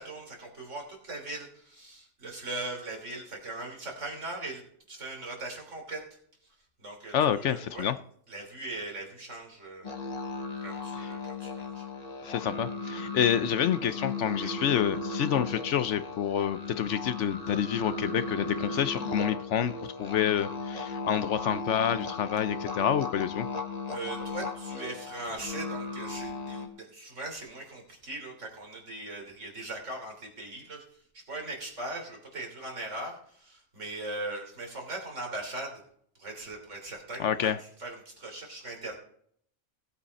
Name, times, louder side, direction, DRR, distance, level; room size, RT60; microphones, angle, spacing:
voice 1, 0.0-6.2 6.8-7.9 8.3-9.9 10.6-11.9 14.4-14.5 23.9-35.8 36.2-38.9, right 2 dB, 65° right, 1 dB, 3.6 m, -40 dB
voice 2, 7.1-8.0 12.2-19.7 20.0-23.5 37.2-37.6, left 9 dB, 70° left, 13 dB, 0.9 m, -28 dB
sound 1, 9.8-26.7, left 3 dB, 30° left, 1.4 m, -36 dB
17.0 x 8.3 x 4.2 m, 0.64 s
omnidirectional pair, 1.4 m